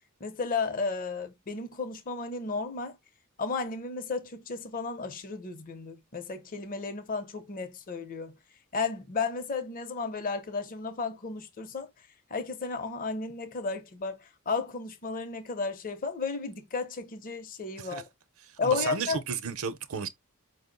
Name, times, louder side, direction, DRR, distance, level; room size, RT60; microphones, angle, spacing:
voice 1, 0.2-3.0 3.4-8.3 8.7-11.9 12.3-18.0 18.6-19.2, left 4 dB, 40° left, 0.6 m, -33 dB
voice 2, 18.6-20.1, right 6 dB, 70° right, 0.6 m, -33 dB
5.0 x 2.0 x 3.8 m
head